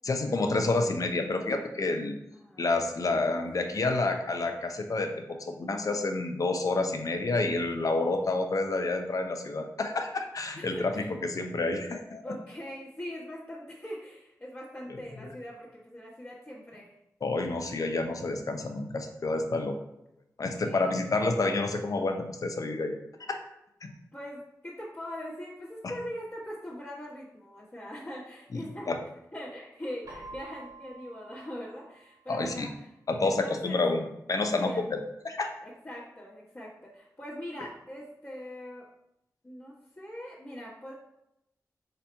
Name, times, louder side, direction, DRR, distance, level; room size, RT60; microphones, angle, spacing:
voice 1, 0.0-2.2 2.6-5.1 5.4-12.2 14.9-15.0 17.2-19.7 20.4-23.0 23.3-23.4 23.8-23.9 28.5-29.0 32.3-32.7 33.1-35.0 35.2-35.5, left 3 dB, 60° left, 5 dB, 0.6 m, -29 dB
voice 2, 2.3-2.7 3.5-3.6 10.5-11.1 12.2-16.9 20.6-21.0 24.1-28.9 29.3-32.7 33.2-33.8 34.6-34.8 35.6-38.8 39.4-40.9, equal, 30° left, -10 dB, 1.3 m, -41 dB
Keyboard (musical), 30.0-32.8, right 2 dB, 75° right, 1.6 m, -49 dB
4.0 x 2.8 x 4.4 m, 0.83 s
cardioid pair, 55°, 7 cm